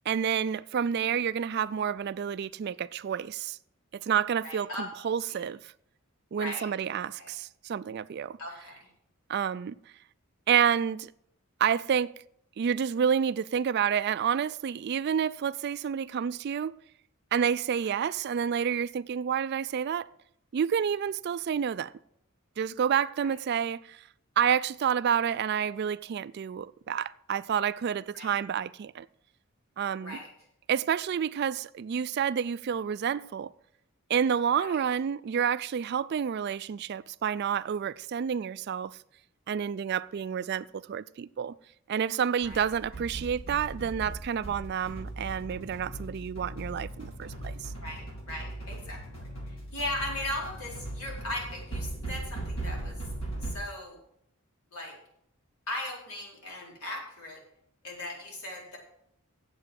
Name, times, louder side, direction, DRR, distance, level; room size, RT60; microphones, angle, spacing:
voice 1, 0.1-3.6 3.9-5.7 6.3-8.4 9.3-9.7 10.5-11.1 11.6-12.1 12.6-16.8 17.3-20.1 20.5-21.9 22.6-24.0 24.4-29.1 29.8-30.2 30.7-33.5 34.1-39.0 39.5-41.5 41.9-47.7, right 8 dB, 50° right, 0.3 m, -29 dB
voice 2, 4.4-4.8 5.3-5.5 6.4-6.7 6.9-7.3 8.4-8.9 23.2-23.3 28.1-28.3 30.0-30.3 34.6-34.8 42.4-42.6 47.8-49.0 49.4-53.0 53.4-54.0 54.7-54.9 55.7-57.4 57.8-58.8, left 1 dB, 90° left, 4.4 m, -38 dB
sound 1, 42.4-53.5, right 1 dB, 65° left, 4.8 m, -39 dB
9.0 x 7.9 x 7.5 m
head